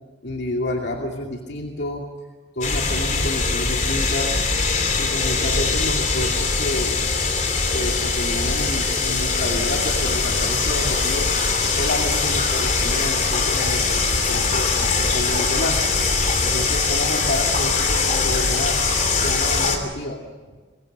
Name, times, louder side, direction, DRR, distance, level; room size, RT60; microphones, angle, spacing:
voice 1, 0.2-2.0 2.6-4.4 5.0-7.0 7.7-11.3 11.7-15.8 16.4-18.8 19.2-20.2, left 1 dB, 60° left, 1 dB, 2.5 m, -29 dB
sound 1, 2.6-19.8, left 4 dB, 40° left, 3.2 m, -22 dB
26.0 x 22.5 x 6.6 m, 1.4 s
head